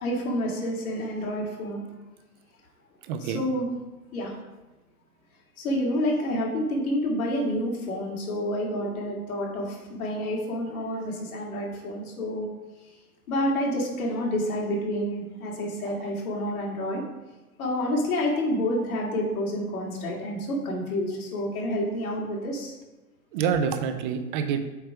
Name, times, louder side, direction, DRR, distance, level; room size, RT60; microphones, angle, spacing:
voice 1, 0.0-1.8 3.2-3.7 4.1-4.3 5.6-12.4 13.3-17.0 17.6-22.7, equal, 65° left, -2 dB, 2.4 m, -28 dB
voice 2, 3.0-3.4 15.9-16.0 23.3-24.6, right 7 dB, 35° right, 8 dB, 0.6 m, -27 dB
7.9 x 3.3 x 4.9 m, 1.1 s
hypercardioid pair, 120°, 46 cm